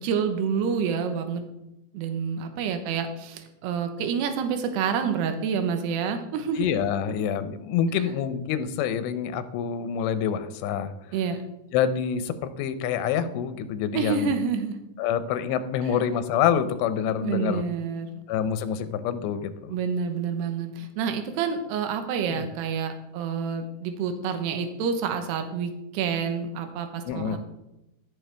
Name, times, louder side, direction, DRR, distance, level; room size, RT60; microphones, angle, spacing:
voice 1, 0.0-1.4 1.9-6.7 11.1-11.4 13.9-14.8 17.2-18.2 19.7-27.4, right 6 dB, 80° right, 7 dB, 3.0 m, -28 dB
voice 2, 6.6-10.9 11.7-14.3 15.0-17.6 18.3-19.7 22.3-22.5 27.1-27.4, left 8 dB, 90° left, 11 dB, 3.0 m, -27 dB
16.0 x 7.0 x 3.4 m, 0.90 s
omnidirectional pair, 4.9 m